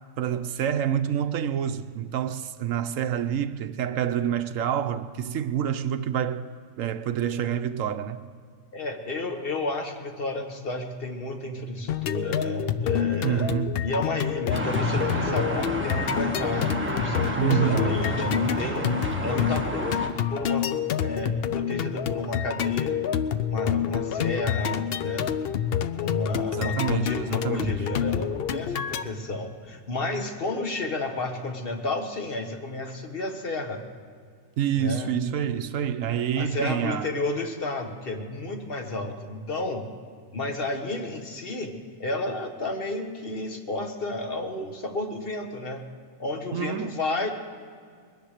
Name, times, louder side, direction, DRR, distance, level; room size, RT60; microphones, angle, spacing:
voice 1, 0.2-6.4 6.8-8.3 13.2-13.8 17.4-17.9 26.5-27.7 34.6-37.1 46.5-47.0, right 9 dB, 75° right, 1.0 m, -27 dB
voice 2, 8.7-13.5 13.8-16.7 17.0-18.9 19.2-19.9 20.3-20.7 21.0-23.0 23.5-25.4 25.9-33.8 34.8-35.1 36.4-39.9 40.3-41.7 42.0-45.8 46.2-47.3, left 2 dB, 45° left, 1.5 m, -31 dB
sound 1, 11.9-29.0, left 9 dB, 60° left, 0.7 m, -28 dB
sound 2, 14.5-20.1, right 1 dB, 10° right, 1.2 m, -30 dB
21.0 x 10.5 x 6.5 m
omnidirectional pair, 1.4 m